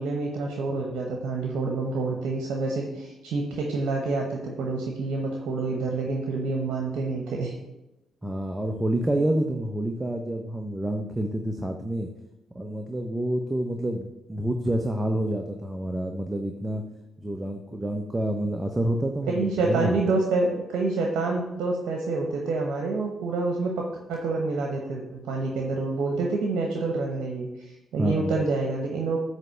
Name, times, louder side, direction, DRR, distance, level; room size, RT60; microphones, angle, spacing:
voice 1, 0.0-7.5 19.3-27.5 27.9-29.2, right 3 dB, 70° right, 1 dB, 1.0 m, -27 dB
voice 2, 8.2-12.1 12.5-16.8 17.2-20.0 28.0-28.3, right 1 dB, 20° right, 4 dB, 0.8 m, -28 dB
9.0 x 3.3 x 6.4 m, 0.93 s
hypercardioid pair, 45°, 0 cm